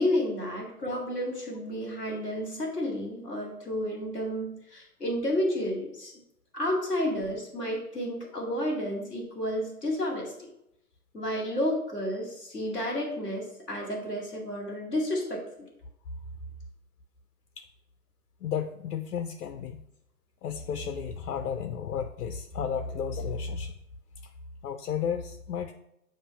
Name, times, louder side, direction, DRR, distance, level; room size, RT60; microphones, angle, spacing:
voice 1, 0.0-6.1 6.5-10.5 11.1-15.4, left 1 dB, ahead, -21 dB, 0.4 m, -31 dB
voice 2, 18.4-19.8 20.4-23.7 24.6-25.7, left 7 dB, 65° left, 6 dB, 0.7 m, -33 dB
7.3 x 2.7 x 5.5 m, 0.81 s
hypercardioid pair, 145°, 47 cm